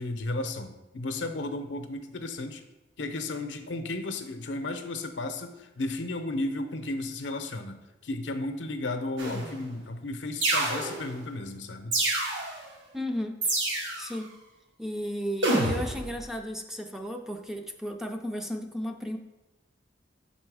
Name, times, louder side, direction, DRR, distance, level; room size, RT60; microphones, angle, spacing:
voice 1, 0.0-2.6 3.0-7.8 8.0-12.0, left 2 dB, 75° left, 7 dB, 0.6 m, -34 dB
sound 1, 9.2-9.6 10.4-11.2 11.9-12.6 13.4-14.2 15.4-16.1, right 2 dB, 80° right, 1.6 m, -28 dB
voice 2, 12.9-13.4 14.0-14.3 14.8-19.2, equal, ahead, 4 dB, 0.4 m, -34 dB
6.0 x 4.2 x 4.7 m, 0.99 s
head